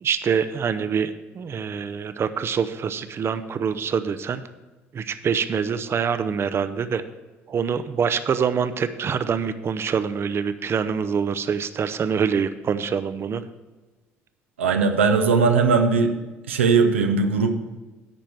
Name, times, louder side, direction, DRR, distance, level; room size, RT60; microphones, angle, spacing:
voice 1, 0.0-4.4 4.9-7.0 7.5-13.4, right 6 dB, 40° right, 11 dB, 0.6 m, -25 dB
voice 2, 14.6-16.1 16.5-17.6, right 5 dB, 90° right, 5 dB, 0.6 m, -19 dB
10.5 x 4.4 x 7.6 m, 1.2 s
hypercardioid pair, 60°, 6 cm